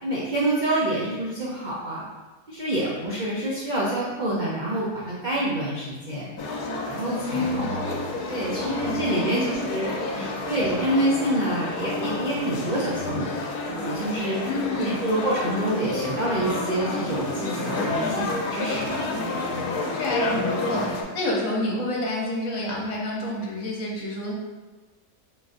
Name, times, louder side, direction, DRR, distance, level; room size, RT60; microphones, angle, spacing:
voice 1, 0.0-2.0 2.5-6.3 6.9-8.0 8.2-13.4 13.7-14.4 14.8-18.9 19.3-19.5, right 1 dB, 75° right, -6 dB, 0.4 m, -27 dB
sound 1, 6.4-21.0, left 2 dB, 80° left, 1.1 m, -30 dB
voice 2, 7.1-7.8 8.6-9.7 10.2-10.3 14.4-15.0 18.0-19.3 19.9-24.3, left 1 dB, 65° left, -3 dB, 1.2 m, -29 dB
3.7 x 3.7 x 2.5 m, 1.3 s
omnidirectional pair, 1.6 m